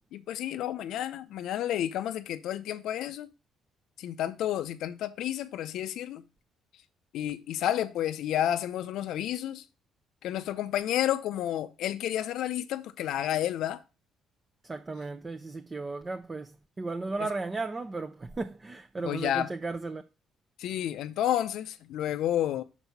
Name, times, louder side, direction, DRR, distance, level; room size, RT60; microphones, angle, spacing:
voice 1, 0.1-3.3 4.0-6.2 7.1-9.6 10.2-13.8 17.2-17.3 19.0-19.5 20.6-22.6, left 11 dB, 75° left, 0.5 m, -30 dB
voice 2, 14.6-20.0, right 3 dB, 25° right, 0.6 m, -35 dB
6.1 x 4.0 x 5.7 m
cardioid pair, 90°, 0 cm